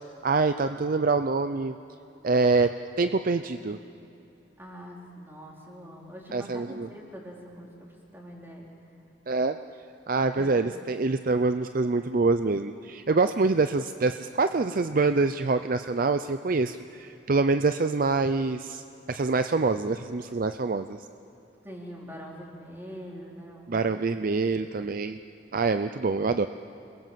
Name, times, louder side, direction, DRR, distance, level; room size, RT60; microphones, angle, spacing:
voice 1, 0.2-1.7 2.2-2.7 3.0-3.8 6.3-6.9 9.3-9.6 10.1-18.8 19.1-21.0 23.7-25.2 25.5-26.5, right 3 dB, 50° right, 9 dB, 0.5 m, -25 dB
voice 2, 4.6-8.7 10.3-10.6 21.6-23.8, equal, 10° right, -3 dB, 4.4 m, -43 dB
29.0 x 21.5 x 7.6 m, 2.8 s
head